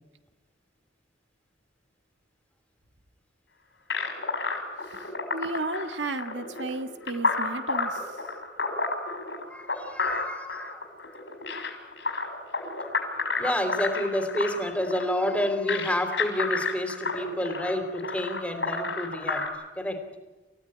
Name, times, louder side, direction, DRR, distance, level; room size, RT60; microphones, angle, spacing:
sound 1, 3.9-19.5, left 3 dB, 70° left, 6.3 m, -31 dB
voice 1, 5.3-8.2, right 2 dB, 80° right, 8 dB, 1.7 m, -33 dB
voice 2, 9.5-10.8 13.4-19.4 19.8-20.0, left 1 dB, 5° left, 6 dB, 3.2 m, -29 dB
28.5 x 16.5 x 9.9 m, 1.1 s
head